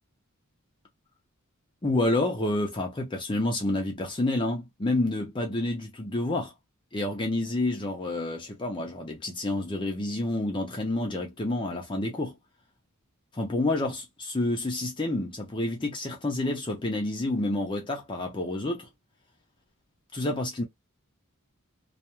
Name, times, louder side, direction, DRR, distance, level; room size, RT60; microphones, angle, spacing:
voice 1, 1.8-6.5 6.9-12.3 13.3-18.9 20.1-20.6, left 2 dB, 20° left, 0.6 m, -29 dB
2.4 x 2.2 x 2.9 m
head